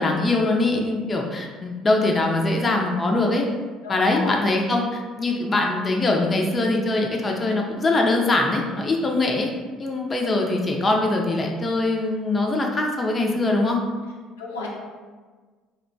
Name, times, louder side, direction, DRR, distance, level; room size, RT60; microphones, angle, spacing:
voice 1, 0.0-3.5 3.9-9.5 9.8-13.8, left 2 dB, 30° left, 1 dB, 0.4 m, -22 dB
voice 2, 3.8-4.4 14.4-14.7, left 2 dB, 85° left, -3 dB, 0.4 m, -32 dB
2.7 x 2.1 x 2.6 m, 1.4 s
hypercardioid pair, 60°, 0 cm